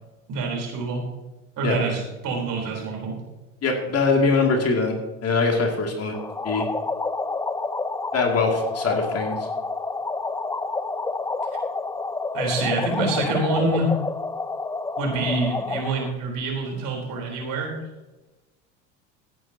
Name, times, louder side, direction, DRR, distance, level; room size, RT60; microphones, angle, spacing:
voice 1, 0.3-1.1 1.6-3.2 12.3-13.9 15.0-17.7, right 3 dB, 55° right, 0 dB, 4.2 m, -26 dB
voice 2, 3.6-6.2 6.4-6.6 8.1-9.4, left 4 dB, 40° left, 1 dB, 2.6 m, -22 dB
sound 1, 6.1-16.1, left 3 dB, 10° left, 0.5 m, -29 dB
15.5 x 10.0 x 2.9 m, 1.1 s
hypercardioid pair, 70°, 39 cm